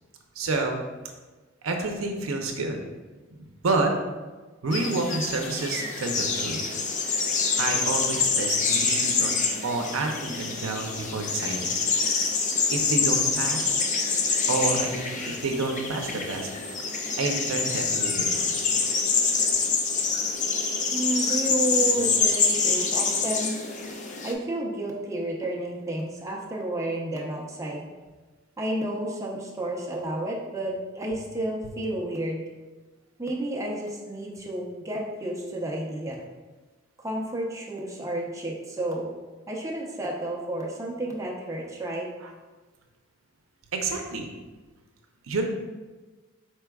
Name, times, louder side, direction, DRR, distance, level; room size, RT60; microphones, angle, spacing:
voice 1, 0.4-0.8 1.6-2.8 3.3-3.9 4.6-6.6 7.6-9.3 9.6-11.7 12.7-13.8 14.5-16.5 17.2-18.6 42.2-42.3 43.7-44.3 45.3-45.4, right 3 dB, 90° right, 3 dB, 0.6 m, -29 dB
sound 1, 4.7-24.3, left 4 dB, 35° left, 0.4 m, -26 dB
voice 2, 20.9-23.5 24.2-27.8 28.6-32.4 33.2-36.2 37.0-39.1 39.5-42.1, right 1 dB, 15° right, -2 dB, 0.7 m, -31 dB
4.6 x 4.5 x 2.3 m, 1.3 s
head